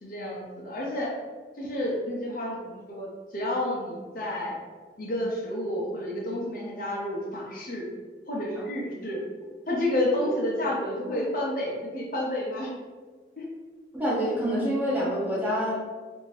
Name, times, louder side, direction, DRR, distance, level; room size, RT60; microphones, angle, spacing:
voice 1, 0.0-1.1 1.5-3.1 3.3-4.6 5.0-7.9 8.3-9.2 9.7-12.7 13.4-13.5, left 1 dB, 50° left, -3 dB, 0.6 m, -30 dB
voice 2, 13.9-15.7, equal, 10° right, -7 dB, 0.7 m, -26 dB
2.7 x 2.6 x 3.1 m, 1.4 s
head